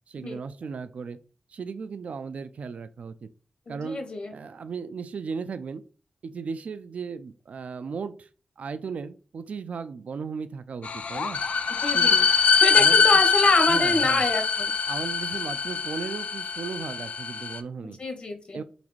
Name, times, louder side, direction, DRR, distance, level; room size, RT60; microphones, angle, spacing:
voice 1, 0.1-1.2 1.5-3.3 3.7-4.0 4.3-5.8 6.2-8.3 8.6-11.4 11.9-12.3 12.7-13.2 13.7-14.2 14.9-18.0 18.5-18.6, right 5 dB, 80° right, 13 dB, 0.3 m, -36 dB
voice 2, 3.7-4.3 11.8-12.1 12.5-14.7 17.8-18.6, left 2 dB, 55° left, 5 dB, 0.7 m, -26 dB
sound 1, 10.8-17.6, left 5 dB, 75° left, 0.3 m, -23 dB
4.0 x 3.3 x 3.1 m, 0.39 s
wide cardioid pair, 120°, 2 cm